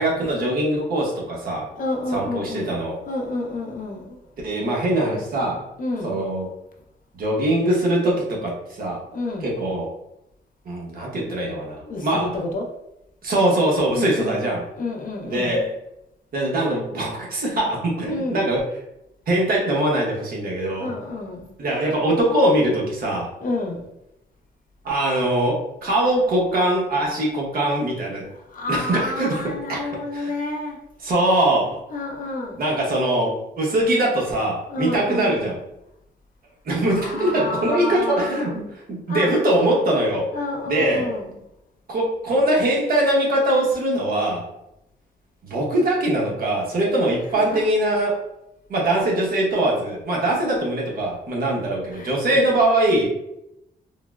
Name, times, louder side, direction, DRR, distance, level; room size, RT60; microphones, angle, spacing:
voice 1, 0.0-1.7 2.1-3.0 4.4-5.6 6.0-6.5 7.1-9.0 9.4-9.9 10.6-12.4 13.2-14.6 15.2-15.7 16.3-18.7 19.3-20.9 21.6-23.3 24.8-28.3 28.7-30.3 31.0-31.8 32.6-35.6 36.6-40.3 40.7-41.1 41.9-44.5 45.4-48.2 48.7-53.1, right 1 dB, 60° right, -2 dB, 1.0 m, -22 dB
voice 2, 1.8-2.8 3.0-4.2 5.8-6.1 9.1-9.5 11.8-12.6 13.9-14.4 14.8-15.5 18.1-18.4 20.8-21.5 23.4-23.9 28.2-30.8 31.9-32.6 34.7-35.4 36.9-38.5 39.1-39.3 40.3-41.3 47.3-47.6 51.9-52.7, left 2 dB, 55° left, 1 dB, 0.7 m, -29 dB
3.7 x 2.0 x 2.3 m, 0.85 s
cardioid pair, 100°, 17 cm